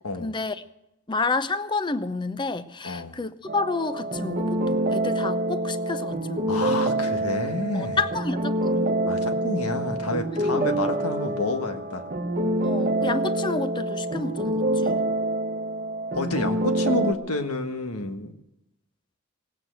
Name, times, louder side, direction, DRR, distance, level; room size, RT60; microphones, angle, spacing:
voice 1, 0.2-0.6 1.1-6.5 7.7-8.9 10.3-10.8 12.6-15.0, left 3 dB, 20° left, 0.6 m, -30 dB
voice 2, 2.8-3.1 6.5-8.0 9.0-12.0 16.1-18.3, left 2 dB, 90° left, 1.5 m, -29 dB
sound 1, 3.5-17.1, right 1 dB, 40° right, 1.1 m, -26 dB
18.5 x 8.8 x 8.0 m
head